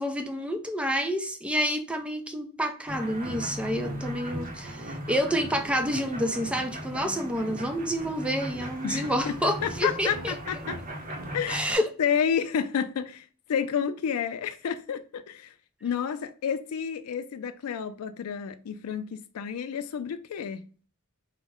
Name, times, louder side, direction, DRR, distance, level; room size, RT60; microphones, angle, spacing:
voice 1, 0.0-10.3 11.5-11.9, equal, 5° right, 0.5 m, -29 dB
sound 1, 2.9-11.8, right 1 dB, 40° right, 0.8 m, -37 dB
voice 2, 8.8-9.3 9.6-10.8 11.3-11.7 12.0-15.5 15.8-20.6, left 7 dB, 85° left, 0.4 m, -30 dB
4.7 x 2.1 x 3.4 m
head